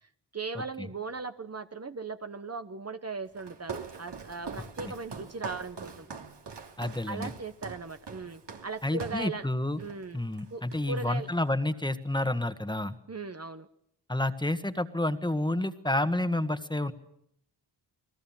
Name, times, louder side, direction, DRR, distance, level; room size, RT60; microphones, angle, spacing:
voice 1, 0.0-6.1 7.1-9.5 9.8-10.2 10.5-11.3 13.1-13.7, right 4 dB, 35° right, 9 dB, 1.1 m, -38 dB
Walk footsteps, 3.3-9.3 9.8-10.1 10.3-11.1, right 5 dB, 70° right, 3.1 m, -43 dB
voice 2, 6.8-7.3 8.8-9.8 10.1-12.9 14.1-16.9, left 1 dB, 10° left, 10 dB, 1.6 m, -29 dB
29.0 x 19.5 x 7.5 m, 0.73 s
cardioid pair, 80°, 43 cm